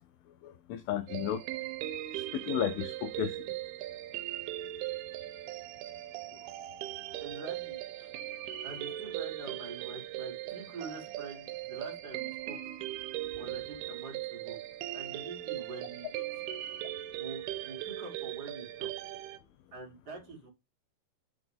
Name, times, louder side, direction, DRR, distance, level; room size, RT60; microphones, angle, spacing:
voice 1, 0.4-1.4 2.1-3.4, left 10 dB, 80° left, 2.3 m, -33 dB
sound 1, 1.1-19.4, right 14 dB, 85° right, 2.6 m, -39 dB
voice 2, 7.2-8.1 8.6-12.6 13.3-14.6 14.9-16.2 17.2-18.9 19.7-20.5, right 3 dB, 40° right, 1.6 m, -45 dB
8.6 x 3.7 x 3.4 m
omnidirectional pair, 4.5 m